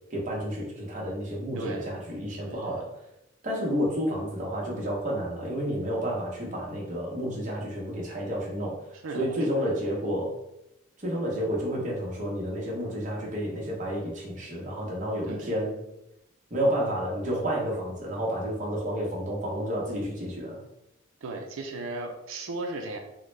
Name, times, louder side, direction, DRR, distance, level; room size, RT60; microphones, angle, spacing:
voice 1, 0.1-2.9 3.4-8.8 9.1-10.3 11.0-15.7 16.5-20.6, equal, 40° right, -3 dB, 0.9 m, -30 dB
voice 2, 1.5-1.9 2.4-2.8 9.0-9.5 15.2-15.5 21.2-23.0, right 2 dB, 85° right, 3 dB, 0.4 m, -36 dB
3.7 x 2.1 x 3.2 m, 0.88 s
head